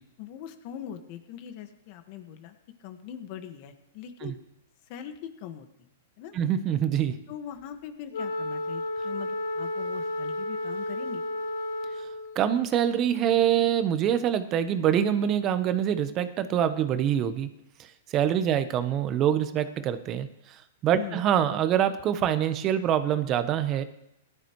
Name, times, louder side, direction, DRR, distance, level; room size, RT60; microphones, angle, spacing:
voice 1, 0.2-4.3 4.9-5.7 6.2-6.4 7.3-11.5 20.9-21.2, left 9 dB, 50° left, 7 dB, 1.8 m, -41 dB
voice 2, 6.3-7.2 12.3-17.5 18.1-20.3 20.8-23.8, right 9 dB, 30° right, 11 dB, 1.1 m, -25 dB
Wind instrument woodwind instrument, 8.1-12.5, left 1 dB, 65° left, 1.3 m, -32 dB
18.5 x 12.5 x 3.2 m, 0.82 s
hypercardioid pair, 130°, 0 cm